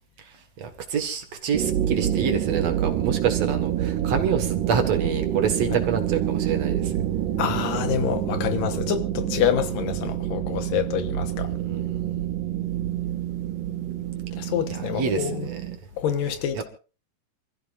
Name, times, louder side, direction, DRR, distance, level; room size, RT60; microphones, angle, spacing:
voice 1, 0.6-6.9 11.6-12.3 14.7-15.6 16.5-16.6, right 6 dB, 55° right, 2.7 m, -27 dB
sound 1, 1.5-15.8, right 11 dB, 75° right, 2.4 m, -27 dB
voice 2, 7.4-11.5 14.4-15.5 16.0-16.6, left 9 dB, 85° left, 2.9 m, -27 dB
28.5 x 14.5 x 2.6 m
omnidirectional pair, 3.8 m